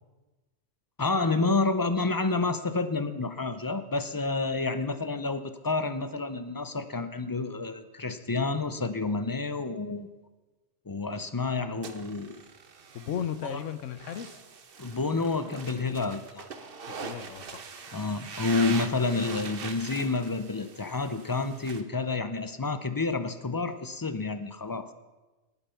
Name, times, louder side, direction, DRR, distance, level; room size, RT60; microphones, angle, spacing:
voice 1, 1.0-10.1 10.9-12.4 13.4-13.6 14.8-16.5 17.9-24.9, left 3 dB, 25° left, 11 dB, 0.4 m, -29 dB
sound 1, 11.8-21.8, right 5 dB, 50° right, 1.1 m, -42 dB
voice 2, 12.9-14.4 16.9-17.7, left 9 dB, 85° left, 13 dB, 1.1 m, -36 dB
19.0 x 8.2 x 5.7 m, 1.2 s
omnidirectional pair, 1.3 m